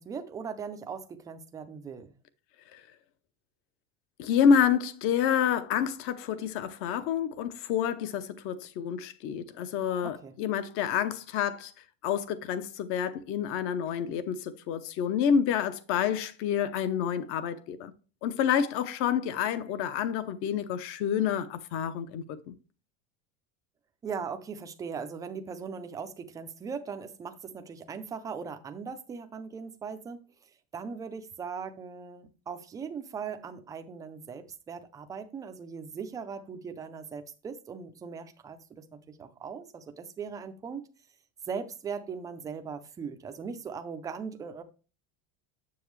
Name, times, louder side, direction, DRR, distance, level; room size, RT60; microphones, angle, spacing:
voice 1, 0.0-2.1 10.0-10.3 24.0-30.2 30.7-40.9 41.5-44.6, right 6 dB, 10° right, 0.3 m, -39 dB
voice 2, 4.2-11.7 12.0-17.9 18.2-22.5, left 8 dB, 40° left, 0.7 m, -28 dB
7.2 x 7.1 x 3.1 m
cardioid pair, 175°, 32 cm